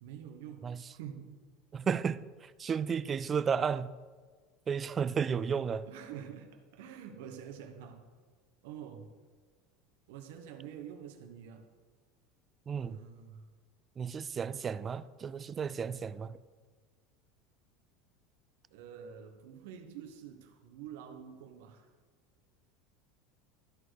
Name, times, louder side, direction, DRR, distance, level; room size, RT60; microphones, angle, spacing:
voice 1, 0.0-1.4 5.8-8.1 8.6-9.1 10.1-11.7 12.7-13.5 18.7-21.9, right 8 dB, 80° right, 1.1 m, -47 dB
voice 2, 1.7-3.9 4.7-5.9 12.7-13.0 14.0-16.4, right 6 dB, 30° right, 0.3 m, -33 dB
13.0 x 4.5 x 4.7 m
supercardioid pair, 115°, 0 cm